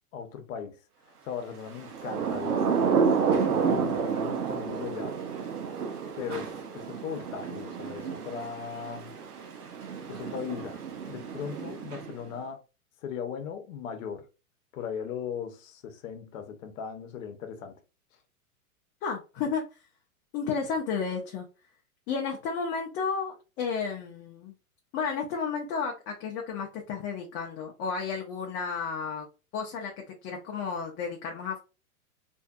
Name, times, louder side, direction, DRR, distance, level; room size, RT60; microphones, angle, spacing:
voice 1, 0.1-0.8 1.2-5.2 6.2-9.1 10.1-10.8 11.1-12.6 13.0-14.3 14.7-17.8, left 7 dB, 60° left, 0.8 m, -38 dB
Thunder / Rain, 1.8-12.3, right 6 dB, 90° right, 0.8 m, -30 dB
voice 2, 19.0-19.6 20.3-21.5 22.1-24.5 24.9-29.3 29.5-29.9 30.2-31.6, left 5 dB, 25° left, 0.5 m, -32 dB
2.6 x 2.5 x 2.3 m
hypercardioid pair, 115°, 44 cm